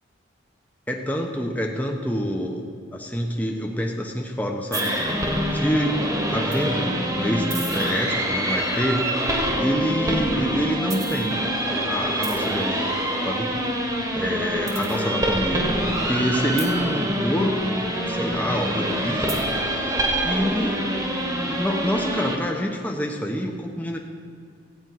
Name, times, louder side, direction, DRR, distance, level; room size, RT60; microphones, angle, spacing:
voice 1, 0.9-2.6 2.9-5.2 5.5-9.0 9.6-11.4 11.8-13.0 13.2-13.5 14.1-19.5 20.2-20.9 21.2-24.0, equal, 10° left, 1 dB, 0.8 m, -27 dB
sound 1, 4.7-22.4, right 1 dB, 15° right, 1.3 m, -25 dB
15.0 x 5.2 x 9.2 m, 2.2 s
head